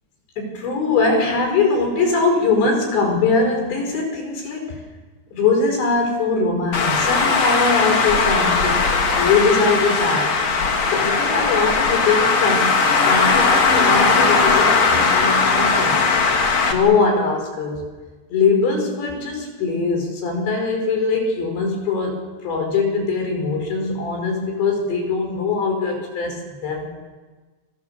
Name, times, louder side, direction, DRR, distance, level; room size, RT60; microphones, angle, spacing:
voice 1, 0.4-4.8 5.3-8.9 9.2-10.6 10.9-12.7 13.0-16.0 16.6-17.8 18.3-26.9, left 4 dB, 70° left, 3 dB, 7.2 m, -21 dB
Traffic noise roadway noise, 6.7-16.7, left 4 dB, 45° left, 3.0 m, -18 dB
29.0 x 25.5 x 7.1 m, 1.3 s
omnidirectional pair, 5.3 m